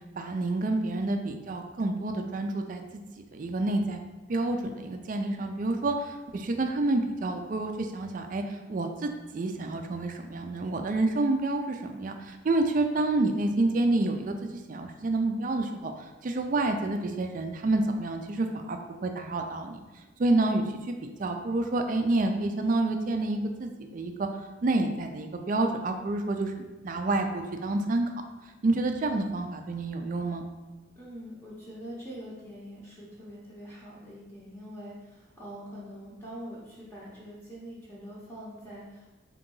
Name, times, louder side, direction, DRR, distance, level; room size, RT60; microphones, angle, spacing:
voice 1, 0.2-2.8 3.3-4.0 4.3-19.8 20.2-24.3 24.6-28.1 28.6-30.4, right 2 dB, 40° right, 5 dB, 0.3 m, -28 dB
voice 2, 30.9-39.1, equal, 10° left, -7 dB, 0.7 m, -44 dB
3.8 x 2.9 x 3.8 m, 1.1 s
head